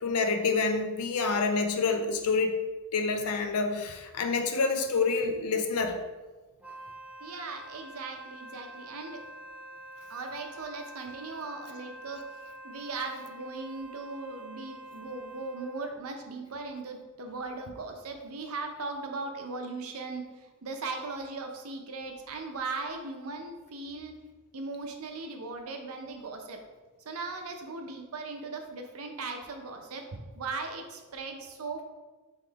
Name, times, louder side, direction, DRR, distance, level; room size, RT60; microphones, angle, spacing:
voice 1, 0.0-2.6 2.9-6.0, left 4 dB, 80° left, 6 dB, 0.5 m, -27 dB
Wind instrument woodwind instrument, 6.6-15.9, right 1 dB, 5° right, 0.6 m, -47 dB
voice 2, 7.2-9.2 10.1-12.2 12.6-24.1 24.5-26.6 27.0-31.8, right 3 dB, 70° right, 4 dB, 0.6 m, -38 dB
3.7 x 3.1 x 4.6 m, 1.2 s
head